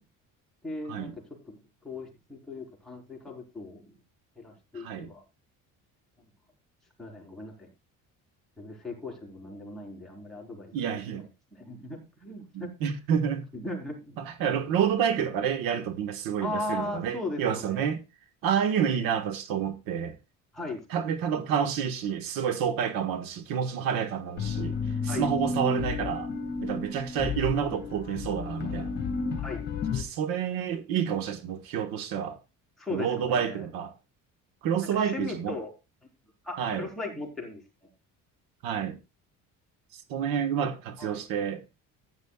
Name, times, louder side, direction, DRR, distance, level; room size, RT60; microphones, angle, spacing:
voice 1, 0.6-3.9 4.4-5.2 6.2-6.3 7.0-7.7 8.6-10.7 11.1-12.7 13.2-14.2 14.5-14.6 16.4-17.9 20.5-20.8 25.1-25.3 29.4-29.7 32.8-33.7 34.9-35.7 36.4-37.9 41.0-41.2, left 2 dB, ahead, 4.1 m, -38 dB
voice 2, 4.7-5.1 10.7-11.3 12.5-13.5 14.2-18.0 18.4-20.2 20.9-24.8 25.0-26.3 26.6-28.9 29.9-32.4 32.9-33.9 34.6-35.5 36.6-36.9 38.6-39.0 40.1-41.6, right 8 dB, 80° right, 1.5 m, -29 dB
sound 1, 24.4-30.0, left 4 dB, 30° left, 2.5 m, -32 dB
15.0 x 10.5 x 2.4 m
cardioid pair, 175°, 34 cm